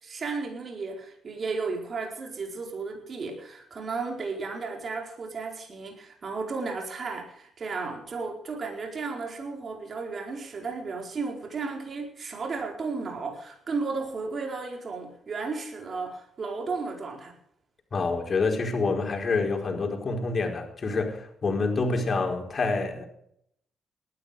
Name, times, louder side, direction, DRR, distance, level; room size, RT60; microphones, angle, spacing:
voice 1, 0.0-17.3, right 4 dB, 50° right, 2 dB, 4.5 m, -34 dB
voice 2, 17.9-23.1, left 3 dB, 45° left, 3 dB, 4.7 m, -27 dB
19.0 x 12.0 x 5.1 m, 0.71 s
cardioid pair, 70°, 0 cm